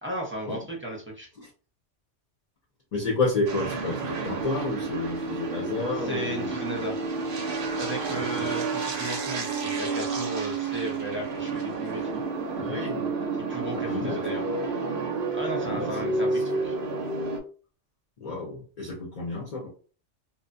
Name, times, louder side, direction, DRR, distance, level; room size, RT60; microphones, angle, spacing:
voice 1, 0.0-1.3 5.9-7.0 7.7-12.2 13.5-14.4 15.3-16.7, right 1 dB, 15° right, -2 dB, 0.5 m, -35 dB
voice 2, 2.9-6.5 8.1-8.4 12.5-13.1 13.7-14.2 15.6-16.4 18.2-19.7, left 3 dB, 40° left, -3 dB, 0.6 m, -31 dB
sound 1, 3.5-17.4, right 4 dB, 60° right, 0.7 m, -30 dB
2.6 x 2.1 x 2.5 m, 0.38 s
omnidirectional pair, 1.2 m